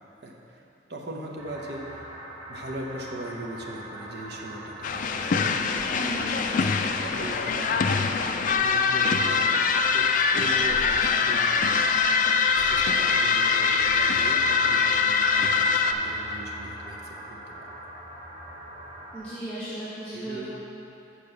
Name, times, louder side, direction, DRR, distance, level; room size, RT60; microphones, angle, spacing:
voice 1, 0.2-2.1 2.5-9.5 9.8-11.8 12.5-17.7 20.1-20.6, right 1 dB, 60° right, -1 dB, 1.0 m, -40 dB
sound 1, 1.4-19.2, right 1 dB, 30° right, 1.3 m, -41 dB
sound 2, 4.8-15.9, left 5 dB, 45° left, 0.3 m, -23 dB
voice 2, 5.9-6.2 19.1-20.6, right 1 dB, 5° left, -11 dB, 1.0 m, -35 dB
6.9 x 4.6 x 6.8 m, 2.8 s
head